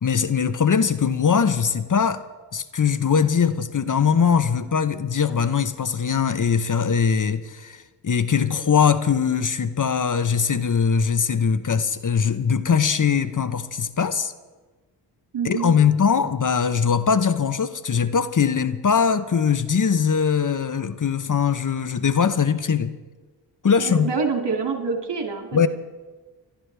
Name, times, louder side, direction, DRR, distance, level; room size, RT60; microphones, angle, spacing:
voice 1, 0.0-2.2 2.5-7.8 8.0-14.3 15.4-22.9 23.6-24.1 25.5-25.7, left 6 dB, 45° left, 0.9 m, -21 dB
voice 2, 15.3-15.8 23.8-25.7, right 5 dB, 65° right, 2.6 m, -26 dB
27.5 x 12.5 x 3.4 m
cardioid pair, 45°, 44 cm